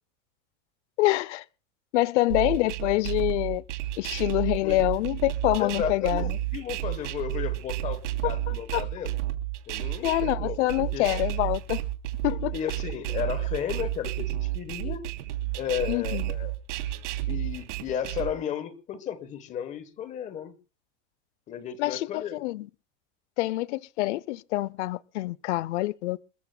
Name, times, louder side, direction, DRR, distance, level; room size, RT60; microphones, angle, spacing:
voice 1, 1.0-1.4 1.9-3.6 4.0-6.4 8.2-8.3 8.7-8.8 10.0-11.8 12.2-12.5 15.9-16.2 21.8-22.7 23.4-26.2, left 18 dB, 70° left, 0.7 m, -26 dB
sound 1, 2.3-18.3, right 15 dB, 80° right, 3.0 m, -31 dB
voice 2, 5.6-9.1 9.7-10.6 10.9-11.1 12.5-15.1 15.5-16.5 17.3-20.5 21.5-22.4, left 9 dB, 20° left, 1.1 m, -34 dB
27.5 x 14.0 x 2.2 m
supercardioid pair, 175°, 36 cm